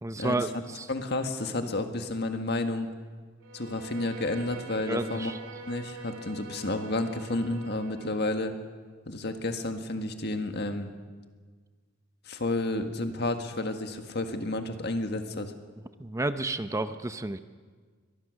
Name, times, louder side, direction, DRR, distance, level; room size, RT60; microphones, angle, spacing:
voice 1, 0.0-0.9 1.6-1.7 4.8-5.4 16.0-17.4, right 2 dB, 15° right, 10 dB, 0.6 m, -31 dB
voice 2, 0.9-2.9 3.5-5.3 5.7-8.5 9.1-10.9 12.3-15.5, left 2 dB, 55° left, 6 dB, 1.7 m, -31 dB
Bowed string instrument, 3.4-8.3, right 4 dB, 80° right, 2.5 m, -44 dB
23.5 x 19.0 x 6.4 m, 1.5 s
head